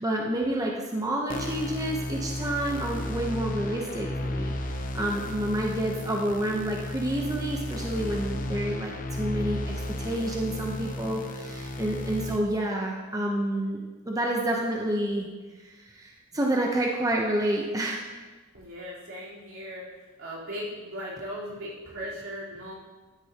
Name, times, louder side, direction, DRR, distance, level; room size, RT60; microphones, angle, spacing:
voice 1, 0.0-13.8 14.1-15.3 15.6-18.0, right 1 dB, 15° right, -1 dB, 0.8 m, -29 dB
sound 1, 1.3-12.4, left 1 dB, 40° left, 0.8 m, -33 dB
voice 2, 18.5-19.9 20.2-22.7, equal, 75° right, -7 dB, 3.8 m, -38 dB
13.0 x 9.8 x 2.9 m, 1.3 s
head